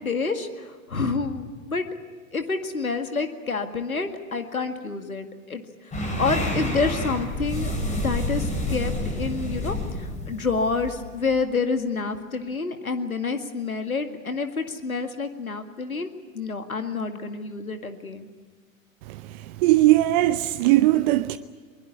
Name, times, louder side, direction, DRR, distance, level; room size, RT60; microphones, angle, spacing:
voice 1, 0.0-1.9 2.3-5.6 5.9-18.3, left 4 dB, 85° left, 2.1 m, -28 dB
sound 1, 5.9-11.4, left 1 dB, 15° left, 5.3 m, -29 dB
voice 2, 19.1-21.4, right 16 dB, 35° right, 0.7 m, -20 dB
22.0 x 21.0 x 8.5 m
figure-of-eight pair, 100°, 42 cm